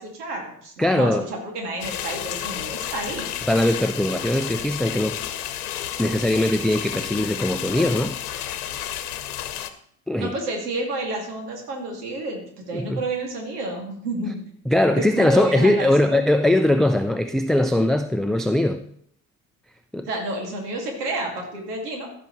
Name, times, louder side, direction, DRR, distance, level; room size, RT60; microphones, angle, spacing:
voice 1, 0.0-3.3 10.2-14.4 15.0-16.2 20.1-22.1, right 2 dB, 85° right, 2 dB, 2.3 m, -30 dB
voice 2, 0.8-1.3 3.5-5.2 6.0-8.6 10.1-10.3 12.7-13.0 14.7-18.8 19.9-20.1, left 1 dB, ahead, 7 dB, 0.5 m, -21 dB
sound 1, 1.8-9.7, left 11 dB, 80° left, 1.0 m, -31 dB
15.5 x 6.0 x 3.1 m, 0.64 s
hypercardioid pair, 65°, 45 cm